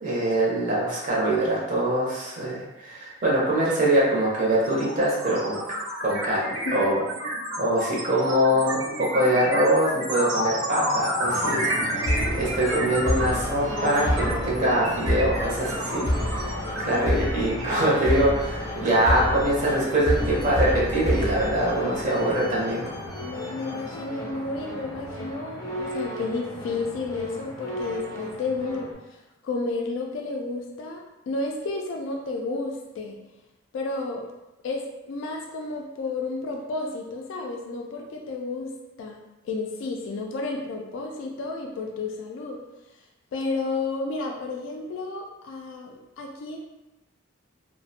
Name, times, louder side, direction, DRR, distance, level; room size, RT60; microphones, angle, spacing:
voice 1, 0.0-5.6 6.0-7.0 7.6-22.8, right 1 dB, 40° right, -5 dB, 0.6 m, -24 dB
sound 1, 3.6-3.7 4.0-18.4, equal, 85° right, 0.6 m, -30 dB
voice 2, 6.7-7.0 15.9-16.0 23.2-33.2 33.7-34.2 34.6-38.7 39.0-39.2 39.4-42.6 43.3-46.6, left 3 dB, 70° left, 0 dB, 0.3 m, -32 dB
sound 2, 11.2-28.9, equal, 15° left, 0.5 m, -30 dB
2.4 x 2.0 x 2.6 m, 1.0 s
head